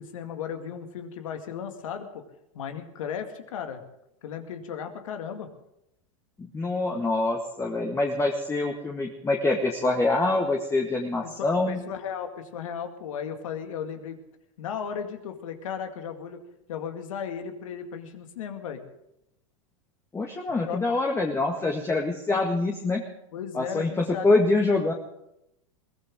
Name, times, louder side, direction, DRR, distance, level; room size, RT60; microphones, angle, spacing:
voice 1, 0.0-2.2 2.5-3.8 4.2-5.5 11.2-14.2 14.6-16.4 16.7-18.8 20.6-20.8 23.3-24.3, left 7 dB, 75° left, 6 dB, 2.2 m, -35 dB
voice 2, 6.4-11.8 20.1-23.0 23.5-24.9, left 2 dB, 15° left, 1 dB, 1.9 m, -25 dB
21.5 x 17.5 x 3.8 m, 0.82 s
hypercardioid pair, 100°, 17 cm